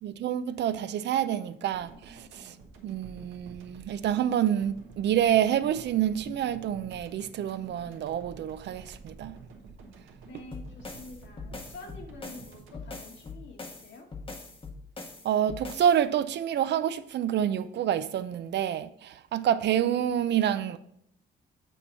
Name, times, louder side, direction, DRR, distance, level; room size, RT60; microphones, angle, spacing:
voice 1, 0.0-2.5 2.8-9.4 15.2-20.8, right 10 dB, 60° right, 0.5 m, -28 dB
sound 1, 1.7-13.9 14.2-14.4, right 4 dB, 80° right, 1.2 m, -50 dB
voice 2, 10.2-14.1, left 3 dB, 65° left, 1.6 m, -48 dB
sound 2, 10.5-16.0, left 3 dB, 25° left, 0.9 m, -42 dB
8.1 x 2.9 x 5.4 m
cardioid pair, 90°, 20 cm